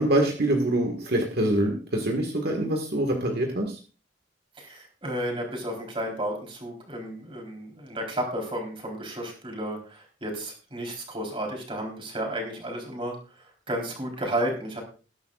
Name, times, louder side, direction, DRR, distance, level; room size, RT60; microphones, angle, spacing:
voice 1, 0.0-3.8, right 1 dB, 60° right, 2 dB, 1.7 m, -25 dB
voice 2, 4.6-14.8, right 1 dB, 30° right, 1 dB, 3.9 m, -32 dB
19.5 x 10.5 x 2.5 m, 0.36 s
head